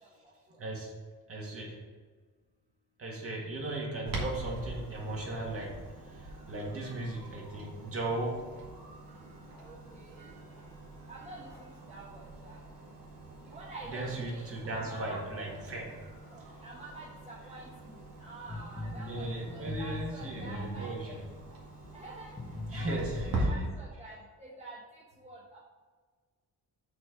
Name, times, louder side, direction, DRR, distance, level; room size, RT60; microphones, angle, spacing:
voice 1, 0.0-0.6 9.6-10.4 11.1-12.6 13.4-15.2 16.3-21.2 21.9-22.3 22.7-25.6, right 2 dB, 20° right, -5 dB, 1.1 m, -48 dB
voice 2, 0.6-1.0 1.3-1.8 3.0-5.8 6.0-8.4 13.9-16.0 19.1-21.2 22.7-23.6, right 2 dB, 40° right, -2 dB, 1.9 m, -37 dB
Clock, 4.1-23.4, right 2 dB, 85° right, 2.0 m, -44 dB
sound 1, 18.5-21.2 21.8-21.9 22.4-23.7, left 1 dB, 15° left, 0.8 m, -39 dB
6.1 x 4.3 x 6.1 m, 1.5 s
wide cardioid pair, 155°, 33 cm